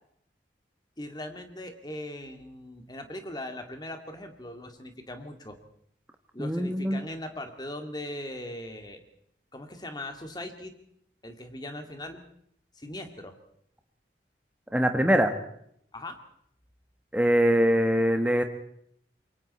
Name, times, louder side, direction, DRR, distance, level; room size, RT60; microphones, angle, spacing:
voice 1, 1.0-5.6 6.3-9.0 9.5-10.7 11.2-12.2 12.8-13.3 15.9-16.2, left 1 dB, 20° left, 6 dB, 2.3 m, -39 dB
voice 2, 6.4-7.0 14.7-15.3 17.1-18.4, equal, 5° right, 5 dB, 1.4 m, -23 dB
27.0 x 23.0 x 4.3 m, 0.68 s
head